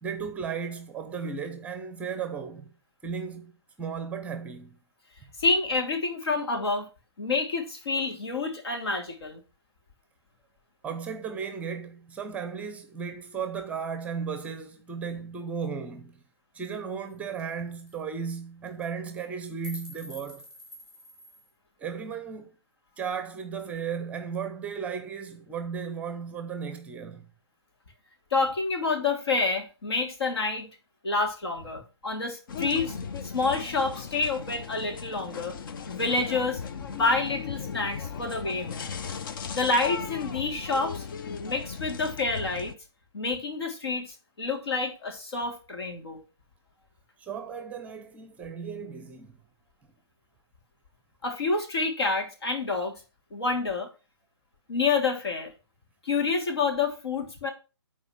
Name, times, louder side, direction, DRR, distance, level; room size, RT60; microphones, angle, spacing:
voice 1, 0.0-2.7 3.0-3.5 3.8-4.8 5.2-5.3 10.8-16.2 16.5-20.5 21.8-22.6 23.0-27.3 47.2-49.4, right 6 dB, 10° right, 0.7 m, -35 dB
voice 2, 5.4-6.9 7.2-9.4 28.3-30.7 31.0-33.0 33.2-35.5 35.9-36.6 36.9-39.0 39.5-41.0 41.4-42.7 43.1-46.2 51.2-52.9 53.3-53.9 54.7-55.5 56.0-57.5, left 3 dB, 65° left, 3.2 m, -28 dB
sound 1, 16.7-16.8 17.1-17.2 17.4-17.6 17.9-18.0 18.6-18.9 19.2-21.5, left 2 dB, 25° left, 2.9 m, -47 dB
sound 2, 32.5-42.7, left 6 dB, 50° left, 0.8 m, -37 dB
9.9 x 4.4 x 6.0 m
hypercardioid pair, 140°, 14 cm